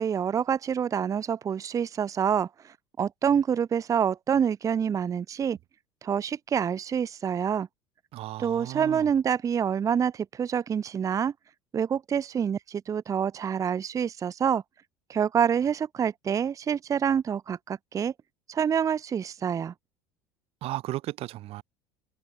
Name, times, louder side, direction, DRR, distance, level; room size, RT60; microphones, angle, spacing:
voice 1, 0.0-5.6 6.0-7.7 8.4-11.3 11.7-14.6 15.1-18.1 18.5-19.7, right 8 dB, 25° right, 0.6 m, -27 dB
voice 2, 8.1-9.1 20.6-21.6, right 16 dB, 50° right, 2.4 m, -35 dB
figure-of-eight pair, 65°, 13 cm